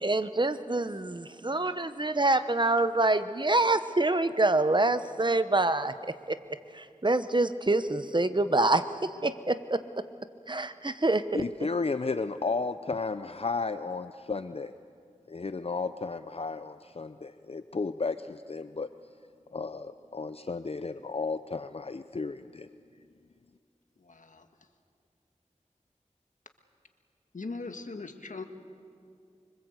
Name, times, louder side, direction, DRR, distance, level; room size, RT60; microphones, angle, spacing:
voice 1, 0.0-5.9 6.3-6.4 6.7-8.8 9.2-9.8 10.5-11.4, right 2 dB, 35° right, 11 dB, 1.1 m, -26 dB
voice 2, 11.3-14.7 15.3-18.9 19.5-22.7, left 4 dB, 50° left, 11 dB, 0.6 m, -33 dB
voice 3, 24.0-24.5 27.3-28.4, left 3 dB, 85° left, 6 dB, 1.7 m, -40 dB
25.5 x 25.0 x 8.1 m, 2.2 s
wide cardioid pair, 45°, 13 cm